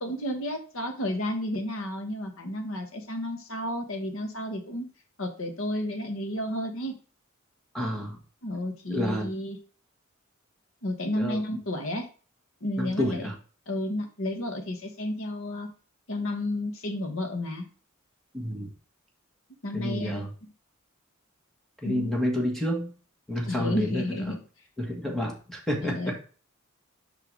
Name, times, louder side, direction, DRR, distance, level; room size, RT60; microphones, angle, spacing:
voice 1, 0.0-4.9 5.2-6.9 8.4-9.6 10.8-12.1 12.6-13.3 13.7-15.7 16.1-17.7 19.6-20.3 21.8-22.2 23.5-24.4 25.8-26.2, left 1 dB, 70° left, 5 dB, 1.4 m, -32 dB
voice 2, 7.7-8.2 8.9-9.3 11.2-11.4 12.8-13.3 18.3-18.7 19.7-20.3 21.8-22.9 23.3-24.4 24.8-26.2, left 1 dB, ahead, -1 dB, 1.4 m, -29 dB
5.6 x 4.1 x 4.6 m, 0.38 s
head